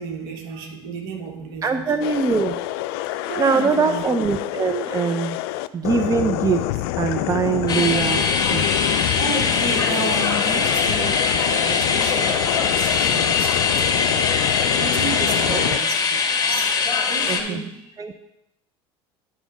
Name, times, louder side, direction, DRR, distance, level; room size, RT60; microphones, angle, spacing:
voice 1, 0.0-1.9 3.3-4.0 8.9-16.7 17.1-17.9, right 4 dB, 70° right, 3 dB, 1.5 m, -33 dB
voice 2, 1.6-2.6 3.4-5.4 5.7-6.6 7.0-8.2 8.5-8.7 15.4-15.7 17.3-17.7 18.0-18.1, right 5 dB, 25° right, 7 dB, 0.6 m, -22 dB
sound 1, 2.0-15.8, left 15 dB, 70° left, 0.4 m, -26 dB
sound 2, 7.7-17.4, left 5 dB, 30° left, 1.6 m, -22 dB
10.0 x 3.5 x 6.1 m, 0.88 s
hypercardioid pair, 80°, 13 cm